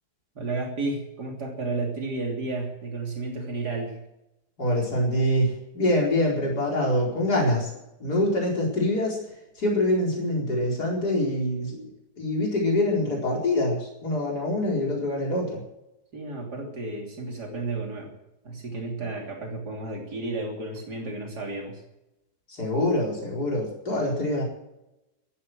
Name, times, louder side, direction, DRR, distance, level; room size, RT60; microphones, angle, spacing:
voice 1, 0.4-4.0 16.1-18.1 18.4-21.8, right 3 dB, 80° right, 0 dB, 3.8 m, -32 dB
voice 2, 4.6-7.7 8.0-9.2 9.6-11.9 12.2-15.6 22.5-24.4, left 1 dB, 80° left, -2 dB, 5.0 m, -25 dB
14.5 x 12.5 x 7.8 m, 0.90 s
omnidirectional pair, 1.7 m